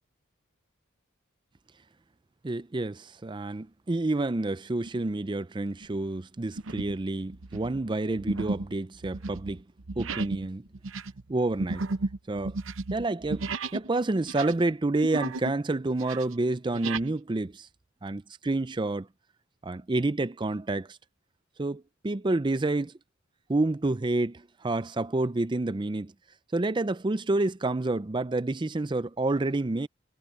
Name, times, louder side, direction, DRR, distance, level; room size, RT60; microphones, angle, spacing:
voice 1, 2.4-9.6 10.0-10.6 11.3-11.8 12.3-12.6 12.9-17.7 18.0-19.1 19.6-21.0 21.6-22.9 23.5-26.1 26.5-29.9, right 2 dB, 25° right, 0.5 m, -29 dB
sound 1, 4.9-5.2 5.7-5.9 6.6-7.0 7.3-13.9 14.2-15.6 15.9-17.1, right 3 dB, 75° right, 0.8 m, -34 dB
head